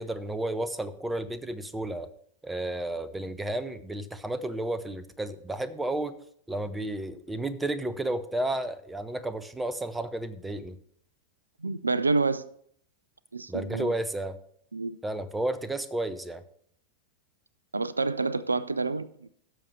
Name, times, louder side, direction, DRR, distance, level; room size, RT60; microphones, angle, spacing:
voice 1, 0.0-2.1 2.4-6.2 6.5-10.8 13.5-14.4 15.0-16.4, right 1 dB, 10° right, 0.7 m, -32 dB
voice 2, 11.6-12.5 13.3-13.9 14.7-15.0 17.7-19.3, right 3 dB, 80° right, 0.4 m, -28 dB
16.5 x 6.8 x 3.2 m
figure-of-eight pair, 90°, 0 cm